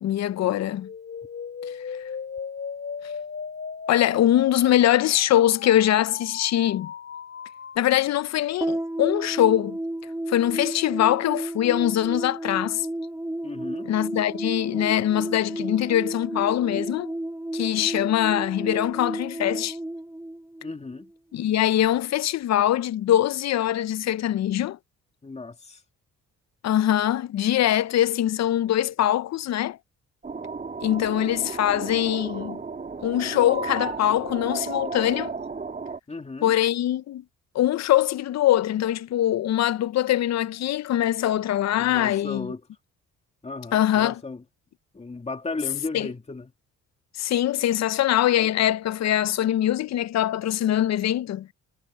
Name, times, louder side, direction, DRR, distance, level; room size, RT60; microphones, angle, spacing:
voice 1, 0.0-0.9 3.9-6.9 7.8-9.8 10.3-12.9 13.9-17.1 17.5-19.8 21.3-24.8 26.6-29.8 30.8-32.6 33.0-35.3 36.4-37.2 37.5-42.5 43.7-44.2 45.9-46.1 47.2-51.5, left 12 dB, 60° left, 0.6 m, -23 dB
sound 1, 0.8-7.8, left 6 dB, 45° left, 2.5 m, -37 dB
sound 2, 8.6-21.1, right 1 dB, 10° right, 2.0 m, -32 dB
voice 2, 13.4-13.9 20.6-21.1 25.2-25.8 36.1-36.5 41.8-42.6 43.4-44.4 44.9-46.5, left 3 dB, 20° left, 2.3 m, -35 dB
sound 3, 30.2-36.0, right 4 dB, 25° right, 2.1 m, -34 dB
cardioid pair, 90°, 30 cm